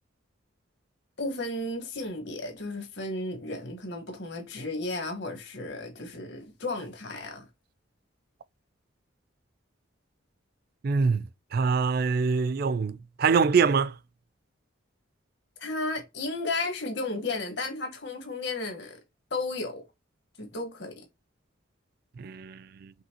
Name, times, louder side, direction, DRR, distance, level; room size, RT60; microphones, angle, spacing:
voice 1, 1.2-7.5 15.6-19.0 19.3-19.8 20.4-21.0, left 2 dB, 60° left, 1.3 m, -34 dB
voice 2, 10.8-11.3 11.5-14.0 22.2-22.9, right 5 dB, 50° right, 0.3 m, -24 dB
5.4 x 3.1 x 2.8 m
head